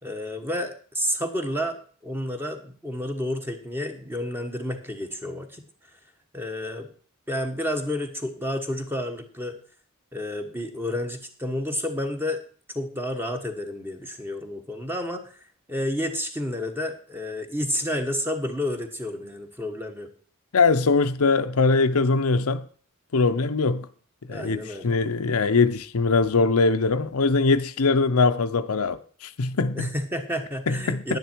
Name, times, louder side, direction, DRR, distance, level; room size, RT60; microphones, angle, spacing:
voice 1, 0.0-5.6 6.3-6.9 7.3-9.6 10.1-12.4 12.7-15.4 15.7-20.1 24.3-25.0 29.7-31.2, left 1 dB, 10° right, 1.3 m, -30 dB
voice 2, 20.5-22.7 23.1-23.9 24.3-29.9 30.7-31.2, left 4 dB, 80° left, 0.7 m, -22 dB
10.5 x 10.5 x 4.5 m
head